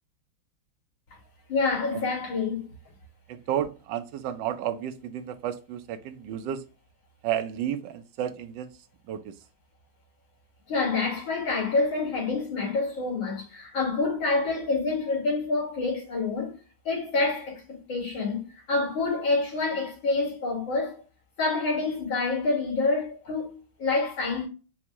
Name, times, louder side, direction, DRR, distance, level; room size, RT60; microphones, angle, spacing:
voice 1, 1.5-2.7 10.7-16.6 16.8-21.0 21.4-24.5, left 3 dB, 75° left, 3.1 m, -27 dB
voice 2, 3.3-6.6 7.2-8.8 9.1-9.3, right 10 dB, 70° right, 1.2 m, -32 dB
5.7 x 2.6 x 2.9 m
omnidirectional pair, 2.2 m